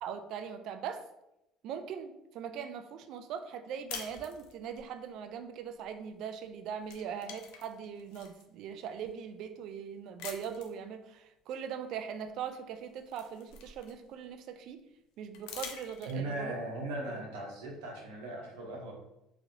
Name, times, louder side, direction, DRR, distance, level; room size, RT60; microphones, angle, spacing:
voice 1, 0.0-1.0 1.6-14.8 15.2-16.5 17.1-17.2, right 7 dB, 65° right, 8 dB, 0.3 m, -41 dB
sound 1, 3.9-4.9 6.3-6.5 6.8-8.4 9.1-9.2 10.2-10.8 12.2-12.3 12.7-14.3 15.3-16.4, left 7 dB, 80° left, 0.4 m, -46 dB
voice 2, 16.1-18.9, right 2 dB, 90° right, -1 dB, 0.8 m, -38 dB
3.0 x 2.7 x 2.6 m, 0.88 s
supercardioid pair, 95°, 0 cm